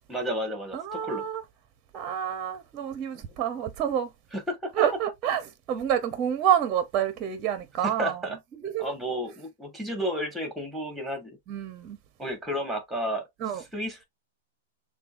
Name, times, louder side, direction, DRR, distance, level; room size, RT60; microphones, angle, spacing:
voice 1, 0.1-1.2 3.1-3.2 4.3-4.7 7.8-8.4 8.8-11.3 12.2-13.3 13.5-14.0, equal, 5° right, 1.7 m, -32 dB
voice 2, 0.7-1.4 1.9-4.1 4.8-5.4 5.7-8.2 8.6-8.9 11.5-12.0 13.4-13.6, right 9 dB, 30° right, 0.7 m, -28 dB
6.6 x 2.3 x 2.5 m
hypercardioid pair, 140°, 0 cm